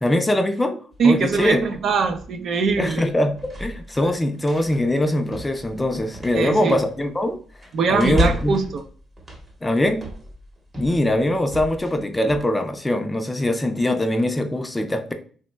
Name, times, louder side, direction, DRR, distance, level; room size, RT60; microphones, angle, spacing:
voice 1, 0.0-1.6 2.8-7.4 7.9-8.6 9.6-10.0 10.7-15.1, left 1 dB, 15° left, 6 dB, 0.5 m, -22 dB
sound 1, 0.9-12.4, right 1 dB, 25° right, 0.9 m, -34 dB
voice 2, 1.0-3.0 6.3-6.8 7.7-8.8, right 5 dB, 65° right, 5 dB, 0.5 m, -21 dB
3.2 x 2.2 x 3.0 m, 0.43 s
cardioid pair, 90°, 0 cm